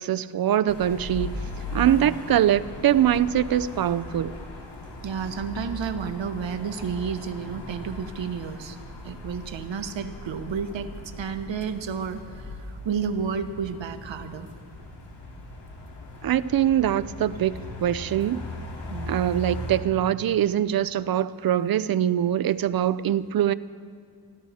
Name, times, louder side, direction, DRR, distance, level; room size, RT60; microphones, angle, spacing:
voice 1, 0.0-1.3 1.7-4.3 16.2-18.5 19.1-23.5, right 11 dB, 55° right, 0.5 m, -23 dB
sound 1, 0.7-19.8, left 2 dB, 65° left, 2.9 m, -38 dB
voice 2, 1.8-2.1 5.0-8.8 9.0-14.5 18.9-19.4, right 6 dB, 80° right, 1.1 m, -31 dB
26.5 x 12.5 x 4.2 m
wide cardioid pair, 135°, 44 cm